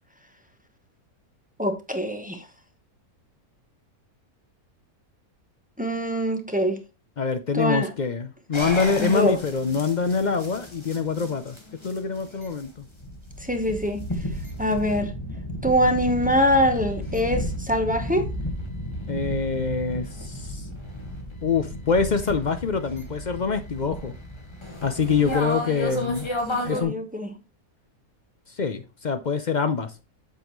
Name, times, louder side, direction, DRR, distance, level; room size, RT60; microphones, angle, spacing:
voice 1, 1.6-2.5 5.8-6.8 7.5-7.9 9.0-9.4 13.4-14.0 14.6-15.1 15.6-18.3 25.3-25.9 26.5-27.3, equal, 5° right, 1.0 m, -24 dB
voice 2, 7.2-11.6 11.8-12.9 19.1-20.7 21.4-24.1 24.8-26.3 26.6-26.9 28.6-30.0, left 5 dB, 60° left, 0.4 m, -25 dB
sound 1, 8.5-26.8, left 1 dB, 20° left, 1.6 m, -33 dB
8.2 x 7.0 x 3.1 m
omnidirectional pair, 1.6 m